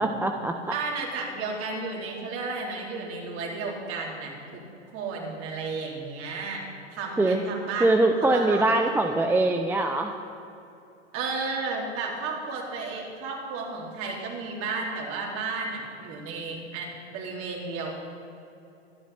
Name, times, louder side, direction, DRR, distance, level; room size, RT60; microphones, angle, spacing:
voice 1, 0.0-0.7 7.2-7.4 7.8-10.1, right 2 dB, 5° right, 5 dB, 0.6 m, -23 dB
voice 2, 0.7-4.6 4.9-7.9 8.2-8.6 9.0-9.3 11.1-17.9, right 4 dB, 40° right, -1 dB, 3.9 m, -33 dB
23.5 x 10.0 x 4.2 m, 2.7 s
hypercardioid pair, 110°, 34 cm